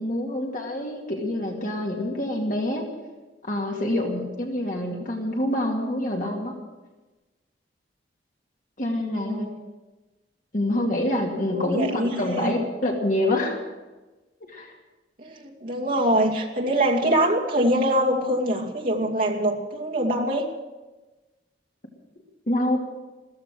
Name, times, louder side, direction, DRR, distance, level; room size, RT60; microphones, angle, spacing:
voice 1, 0.0-2.9 3.4-6.6 8.8-9.5 10.5-13.6 14.4-14.8 22.5-22.8, left 1 dB, 45° left, 1 dB, 2.3 m, -26 dB
voice 2, 8.9-9.5 11.4-12.5 15.2-20.5, right 1 dB, 50° right, -2 dB, 2.5 m, -24 dB
15.0 x 14.5 x 6.4 m, 1.2 s
head